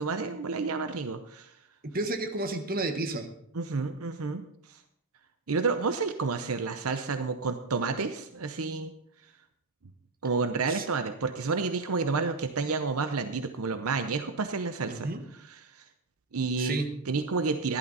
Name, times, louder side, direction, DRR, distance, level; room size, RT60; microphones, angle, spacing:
voice 1, 0.0-1.6 3.5-4.8 5.5-8.9 10.2-15.1 15.6-15.8 16.3-16.8 17.1-17.8, right 4 dB, 80° right, 9 dB, 0.8 m, -30 dB
voice 2, 1.8-3.3 10.7-10.8 14.8-15.2 16.6-16.9, right 2 dB, 45° right, 6 dB, 1.4 m, -31 dB
14.5 x 11.5 x 4.1 m, 0.69 s
head